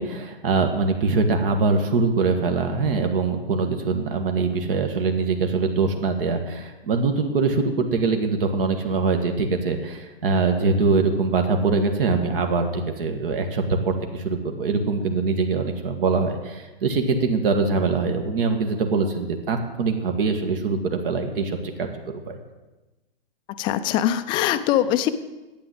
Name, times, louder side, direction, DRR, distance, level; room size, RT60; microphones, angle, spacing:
voice 1, 0.0-21.9 22.3-22.4, right 4 dB, 60° right, 5 dB, 1.8 m, -23 dB
voice 2, 23.6-25.1, left 12 dB, 15° left, 11 dB, 0.4 m, -22 dB
11.5 x 8.7 x 7.8 m, 1.1 s
hypercardioid pair, 140°, 31 cm